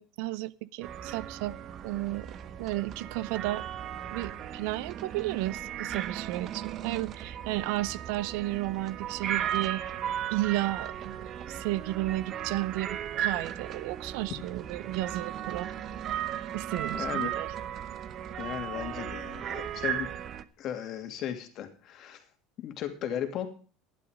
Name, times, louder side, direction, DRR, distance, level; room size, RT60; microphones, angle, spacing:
voice 1, 0.0-1.6 1.8-3.6 4.1-9.8 10.3-15.7 16.5-17.5, right 17 dB, 70° right, 0.6 m, -33 dB
sound 1, 0.8-20.4, right 10 dB, 35° right, 0.8 m, -36 dB
voice 2, 16.9-17.3 18.4-20.1 20.6-22.2 22.6-23.5, left 10 dB, 40° left, 2.5 m, -36 dB
12.5 x 11.0 x 5.1 m
cardioid pair, 165°, 0 cm